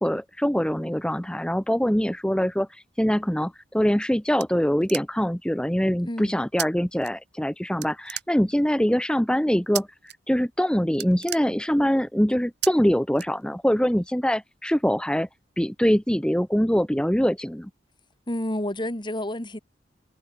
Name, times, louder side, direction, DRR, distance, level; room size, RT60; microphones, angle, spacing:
voice 1, 0.0-9.9 10.3-15.3 15.6-17.7, equal, 5° left, 1.1 m, -23 dB
sound 1, 3.7-5.4 6.6-6.7 7.0-7.5 7.8-8.8 9.7-10.1 10.5-10.6 10.9-12.0 12.6-12.7 13.1-13.8, right 13 dB, 65° right, 2.7 m, -34 dB
voice 2, 6.1-6.4 18.3-19.6, left 1 dB, 25° left, 2.5 m, -29 dB
head